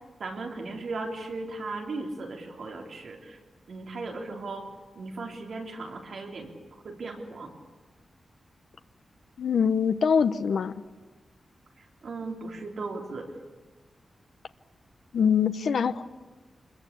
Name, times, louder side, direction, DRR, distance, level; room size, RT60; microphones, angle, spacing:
voice 1, 0.2-3.4 3.7-4.7 5.0-7.5 11.8-13.3, right 3 dB, 60° right, 1 dB, 3.9 m, -37 dB
voice 2, 9.4-10.7 15.1-16.0, left 6 dB, 75° left, 11 dB, 0.9 m, -23 dB
26.5 x 21.5 x 8.5 m, 1.3 s
wide cardioid pair, 180°, 0 cm